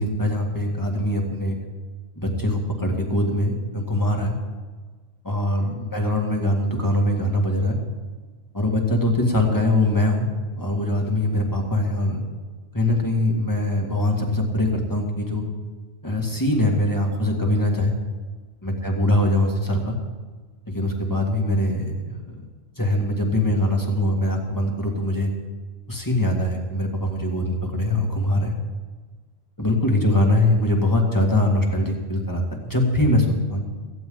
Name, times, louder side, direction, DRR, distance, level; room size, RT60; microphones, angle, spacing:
voice 1, 0.0-1.6 2.2-4.4 5.2-7.8 8.5-10.3 10.6-12.2 12.7-15.4 16.0-17.9 18.6-20.0 20.7-22.4 22.8-25.3 25.9-28.5 29.6-33.6, left 1 dB, 15° left, 0 dB, 2.2 m, -22 dB
17.5 x 15.0 x 3.9 m, 1.4 s
omnidirectional pair, 1.3 m